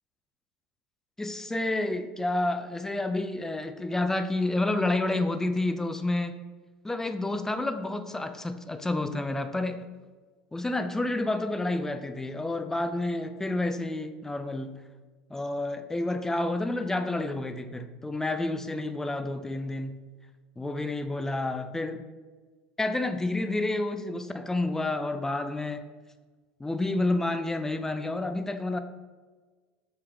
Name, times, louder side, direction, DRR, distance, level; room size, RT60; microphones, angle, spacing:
voice 1, 1.2-6.4 6.8-9.9 10.5-14.8 15.3-20.0 20.6-22.0 22.8-25.8 26.6-28.8, left 2 dB, 10° left, 8 dB, 0.3 m, -29 dB
3.4 x 3.1 x 3.4 m, 1.4 s
hypercardioid pair, 75°, 5 cm